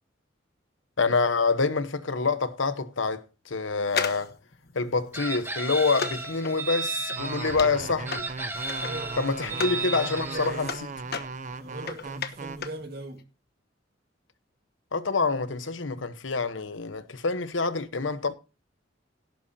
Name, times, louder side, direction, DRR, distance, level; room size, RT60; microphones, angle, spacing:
voice 1, 1.0-4.4 4.7-8.2 9.2-10.7 14.9-18.3, left 4 dB, 85° left, 1.1 m, -27 dB
sound 1, 3.9-9.8 10.2-12.9 13.1-13.2, left 6 dB, 55° left, 1.1 m, -36 dB
Chicken rooster, 5.1-7.6 8.1-10.5, right 3 dB, 10° right, 1.5 m, -33 dB
sound 2, 7.2-12.6, right 3 dB, 40° right, 0.8 m, -37 dB
voice 2, 7.3-8.0 8.7-10.6 11.6-13.2, right 2 dB, 55° right, 2.2 m, -40 dB
17.0 x 9.1 x 2.8 m
head